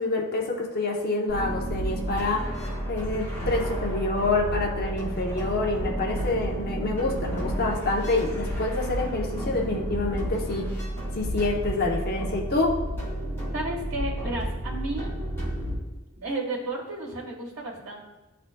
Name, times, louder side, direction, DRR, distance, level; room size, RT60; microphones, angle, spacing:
voice 1, 0.0-2.5 2.9-10.8 11.1-12.8, left 2 dB, 45° left, 0 dB, 0.9 m, -27 dB
sound 1, 1.3-15.7, equal, 15° left, 2.0 m, -31 dB
voice 2, 13.5-15.1 16.1-18.0, right 2 dB, 90° right, -3 dB, 1.8 m, -32 dB
11.5 x 3.9 x 2.3 m, 1.1 s
head